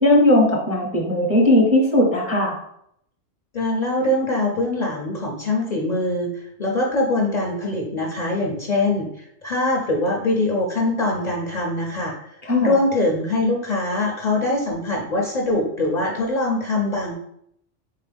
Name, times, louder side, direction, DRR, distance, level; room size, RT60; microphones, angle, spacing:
voice 1, 0.0-2.5 12.4-12.7, left 1 dB, 15° right, -1 dB, 0.6 m, -17 dB
voice 2, 3.5-17.2, left 2 dB, 50° left, -1 dB, 0.6 m, -23 dB
3.8 x 3.7 x 3.3 m, 0.72 s
omnidirectional pair, 1.2 m